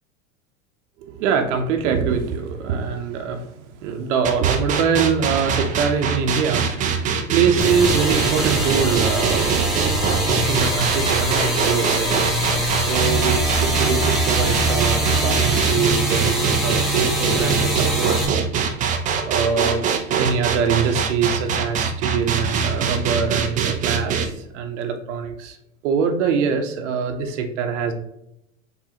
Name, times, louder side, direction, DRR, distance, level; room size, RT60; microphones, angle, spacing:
voice 1, 1.0-9.6 10.5-18.5 19.2-19.8 20.2-25.6 25.8-27.9, right 6 dB, 55° right, 5 dB, 0.8 m, -24 dB
sound 1, 4.2-24.2, right 6 dB, 20° right, 0.4 m, -23 dB
sound 2, 7.6-18.3, right 1 dB, ahead, 1.2 m, -23 dB
4.6 x 3.4 x 2.8 m, 0.80 s
figure-of-eight pair, 90°, 42 cm